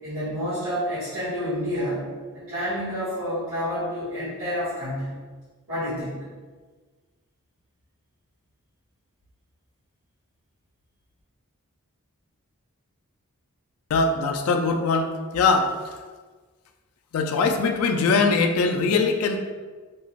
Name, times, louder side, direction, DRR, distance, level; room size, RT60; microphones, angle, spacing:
voice 1, 0.0-2.1 2.3-5.1 5.7-6.2, equal, 50° right, -14 dB, 1.3 m, -29 dB
voice 2, 13.9-15.8 17.1-19.4, left 4 dB, 75° left, 4 dB, 0.3 m, -22 dB
2.4 x 2.3 x 3.1 m, 1.4 s
head